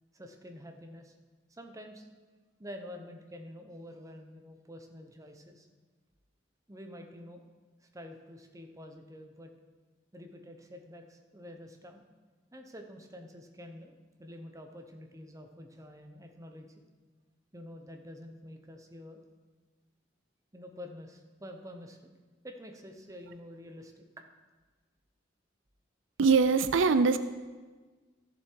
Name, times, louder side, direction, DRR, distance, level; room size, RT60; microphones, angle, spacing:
voice 1, 0.1-1.1 1.5-2.1 2.6-5.7 6.7-7.4 7.8-9.5 10.1-12.1 12.5-16.7 17.5-19.2 20.5-22.0 22.4-24.0, left 1 dB, 15° right, 4 dB, 0.9 m, -48 dB
voice 2, 26.2-27.2, right 4 dB, 75° right, 12 dB, 0.4 m, -22 dB
14.5 x 7.3 x 4.6 m, 1.3 s
head